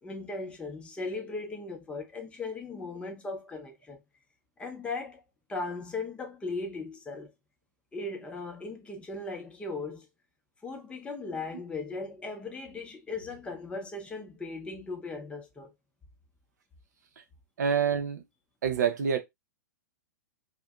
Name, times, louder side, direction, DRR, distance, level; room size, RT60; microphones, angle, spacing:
voice 1, 0.0-4.0 4.6-5.2 5.5-7.3 7.9-10.1 10.6-15.7, left 3 dB, 10° left, 0.6 m, -38 dB
voice 2, 17.6-18.2 18.6-19.2, right 7 dB, 65° right, 0.6 m, -26 dB
2.6 x 2.1 x 2.3 m
figure-of-eight pair, 105°, 10 cm